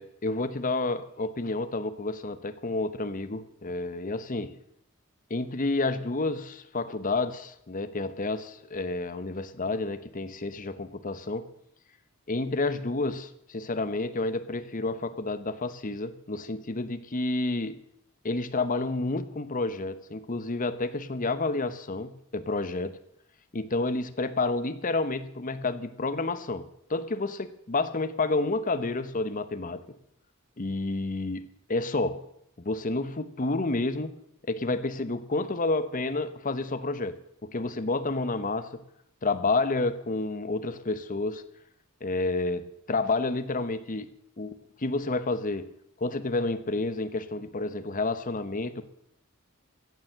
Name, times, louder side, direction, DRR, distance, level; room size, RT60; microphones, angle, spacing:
voice 1, 0.0-4.6 5.3-11.5 12.3-17.8 18.2-23.0 23.5-30.0 30.6-32.2 32.6-34.2 34.5-38.8 39.2-41.4 42.0-45.7 46.0-48.9, left 3 dB, 40° left, 0.9 m, -30 dB
15.0 x 7.2 x 7.8 m
head